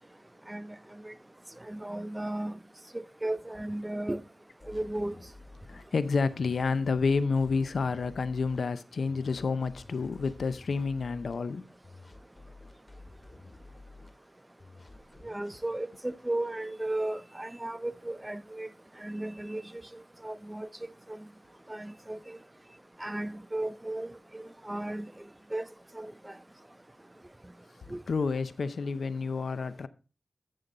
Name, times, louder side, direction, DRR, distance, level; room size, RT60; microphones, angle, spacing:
voice 1, 1.7-2.6 2.9-4.2 4.7-5.2 15.2-18.7 19.0-19.7 20.2-20.7 21.7-22.4 23.0-25.1 25.5-25.7 25.9-26.3 27.9-28.0, right 1 dB, 20° right, 0.6 m, -35 dB
sound 1, 4.6-5.8 6.3-8.6 9.1-11.3 11.8-14.1 14.6-15.6, left 2 dB, 30° left, 2.1 m, -51 dB
voice 2, 5.7-11.6 28.1-29.9, left 4 dB, 80° left, 0.6 m, -29 dB
11.5 x 6.9 x 3.8 m
cardioid pair, 50°, 0 cm